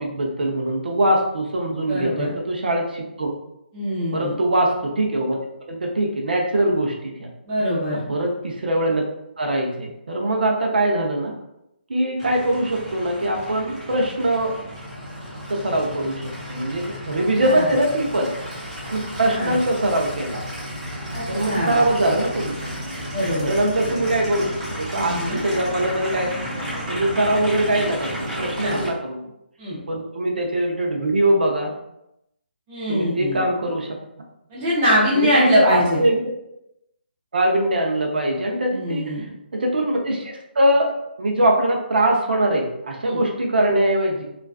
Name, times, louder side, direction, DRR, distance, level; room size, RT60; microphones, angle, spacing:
voice 1, 0.0-3.3 4.1-5.4 5.7-7.3 8.1-9.0 9.4-11.4 11.9-14.6 15.5-16.2 16.5-18.3 18.9-20.4 21.3-22.7 23.4-26.3 26.7-29.2 29.9-31.7 32.9-33.9 35.1-36.2 37.3-39.2 39.5-40.9 41.2-44.2, right 1 dB, 60° right, 1 dB, 0.5 m, -22 dB
voice 2, 1.9-2.3 3.7-4.3 7.5-8.0 17.2-17.7 19.3-19.6 21.1-21.8 23.1-23.5 23.9-24.0 24.9-25.4 28.6-28.8 29.6-29.8 32.7-33.4 34.5-36.0 38.7-39.2 43.0-43.2, equal, 10° right, -9 dB, 0.3 m, -23 dB
Aircraft, 12.2-28.9, equal, 30° right, 0.8 m, -32 dB
2.3 x 2.3 x 2.3 m, 0.84 s
hypercardioid pair, 180°, 6 cm